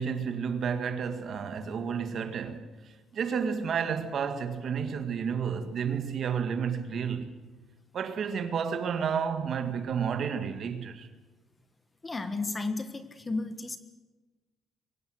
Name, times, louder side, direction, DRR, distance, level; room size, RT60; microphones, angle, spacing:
voice 1, 0.0-2.7 3.1-7.4 7.9-11.1, right 6 dB, 45° right, 1.8 m, -31 dB
voice 2, 12.0-13.8, left 3 dB, 20° left, 1.4 m, -33 dB
23.5 x 17.5 x 7.9 m
cardioid pair, 155°, 0 cm